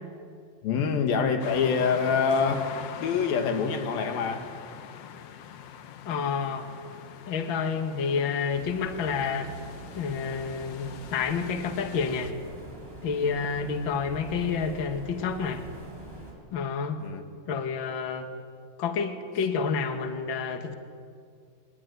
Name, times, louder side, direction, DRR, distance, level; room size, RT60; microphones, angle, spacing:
voice 1, 0.6-2.7 3.0-4.5 17.0-17.2, left 6 dB, 85° left, 3.7 m, -25 dB
sound 1, 1.4-12.3, left 8 dB, 65° left, 1.5 m, -43 dB
voice 2, 6.1-6.7 7.3-9.5 10.0-12.3 13.0-15.6 16.5-17.0 17.5-18.3 18.8-20.8, left 5 dB, 45° left, 1.9 m, -29 dB
sound 2, 8.5-16.3, right 1 dB, 5° right, 6.4 m, -45 dB
23.5 x 21.5 x 9.5 m
omnidirectional pair, 4.1 m